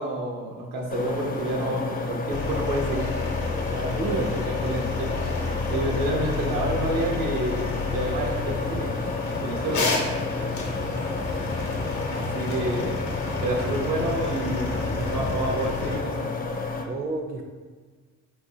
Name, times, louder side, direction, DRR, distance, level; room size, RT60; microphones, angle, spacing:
voice 1, 0.0-3.1 4.0-5.1 5.7-8.9 9.4-9.9 12.1-13.0 13.4-16.3, right 1 dB, 85° right, 0 dB, 0.8 m, -29 dB
sound 1, 0.9-16.8, left 3 dB, 30° left, 0.4 m, -31 dB
sound 2, 2.3-16.0, left 3 dB, 80° left, 0.8 m, -31 dB
voice 2, 3.7-4.3 16.9-17.4, right 3 dB, 30° right, 3 dB, 0.4 m, -30 dB
3.9 x 2.4 x 2.7 m, 1.5 s
cardioid pair, 90°, 30 cm